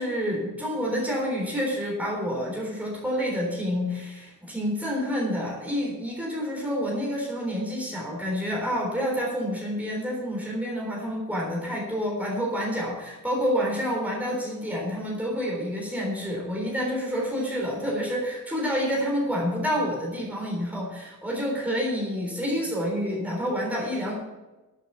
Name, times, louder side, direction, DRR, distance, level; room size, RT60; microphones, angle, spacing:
voice 1, 0.0-24.1, equal, 5° right, -2 dB, 3.6 m, -28 dB
12.0 x 8.4 x 7.1 m, 1.1 s
head